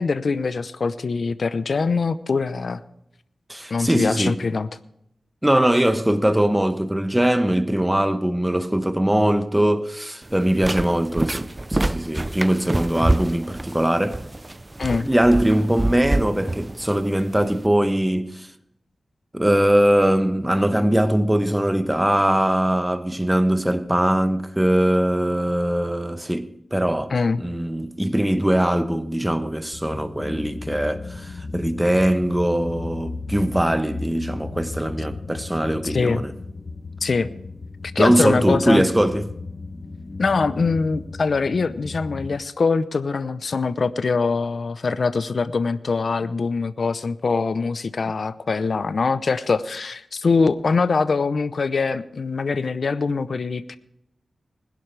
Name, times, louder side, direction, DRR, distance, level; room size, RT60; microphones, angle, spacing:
voice 1, 0.0-2.8 3.7-4.7 14.8-15.1 27.1-27.4 35.8-36.2 37.0-37.3 37.9-38.8 40.2-53.8, left 4 dB, 65° left, 0.7 m, -23 dB
voice 2, 3.5-4.4 5.4-14.2 15.0-18.5 19.3-27.1 27.4-36.3 38.0-39.3, right 1 dB, 10° right, 1.0 m, -21 dB
sound 1, 10.2-17.7, right 2 dB, 25° right, 0.5 m, -27 dB
sound 2, 29.7-42.4, left 3 dB, 50° left, 1.0 m, -35 dB
20.5 x 11.5 x 3.4 m
cardioid pair, 55°, 0 cm